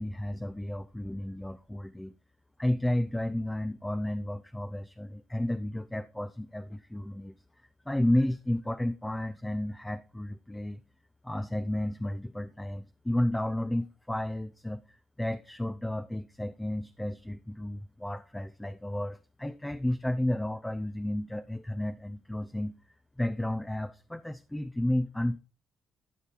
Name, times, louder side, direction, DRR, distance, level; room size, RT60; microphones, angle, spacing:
voice 1, 0.0-2.1 2.6-7.4 7.9-10.8 11.2-14.8 15.2-22.7 23.2-25.4, left 1 dB, 10° left, 0.5 m, -32 dB
13.0 x 5.6 x 4.5 m
cardioid pair, 90°, 0 cm